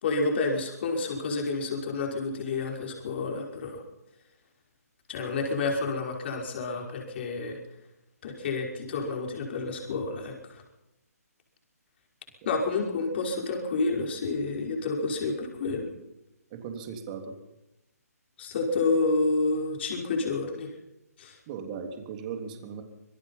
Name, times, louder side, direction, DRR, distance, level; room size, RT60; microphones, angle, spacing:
voice 1, 0.0-3.8 5.1-7.6 8.2-10.6 12.4-15.9 18.4-20.7 21.2-21.4, left 3 dB, 40° left, 1 dB, 5.5 m, -29 dB
voice 2, 16.5-17.4 21.5-22.8, right 6 dB, 30° right, 5 dB, 3.3 m, -37 dB
26.0 x 19.5 x 5.8 m, 0.92 s
hypercardioid pair, 150°, 9 cm